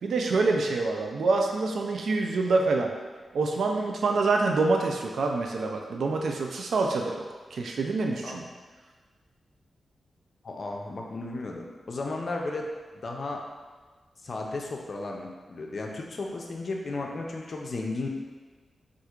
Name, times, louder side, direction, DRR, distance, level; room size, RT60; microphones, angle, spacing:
voice 1, 0.0-2.9 3.3-7.2 7.5-8.4, right 3 dB, 80° right, 2 dB, 0.3 m, -26 dB
voice 2, 10.4-13.4 14.2-18.1, left 2 dB, 50° left, 0 dB, 0.4 m, -34 dB
4.3 x 2.4 x 2.4 m, 1.4 s
wide cardioid pair, 105°, 0 cm